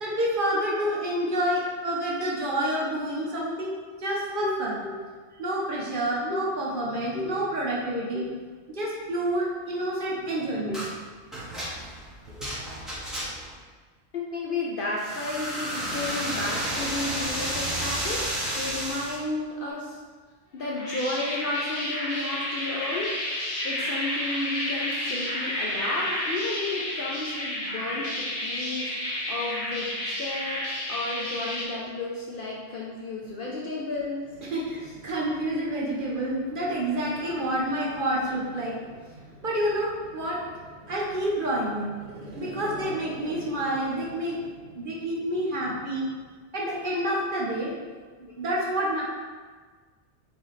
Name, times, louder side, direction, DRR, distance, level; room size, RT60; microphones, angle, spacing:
voice 1, 0.0-3.7 4.0-4.8 5.4-8.3 8.7-10.8 12.3-12.5 34.5-46.1 46.5-47.7 48.4-49.0, right 1 dB, 50° right, -4 dB, 0.8 m, -29 dB
voice 2, 1.8-2.2 4.4-4.5 6.3-6.4 7.1-7.3 8.1-8.2 10.2-10.3 10.7-10.8 14.1-20.0 20.5-23.1 23.6-34.3, left 2 dB, 60° left, -4 dB, 0.6 m, -33 dB
sound 1, 10.7-10.9 11.3-13.6 15.0-19.2, right 1 dB, ahead, 1.1 m, -31 dB
sound 2, 20.6-31.6, left 1 dB, 45° left, 1.0 m, -31 dB
4.8 x 2.7 x 3.1 m, 1.5 s
omnidirectional pair, 1.3 m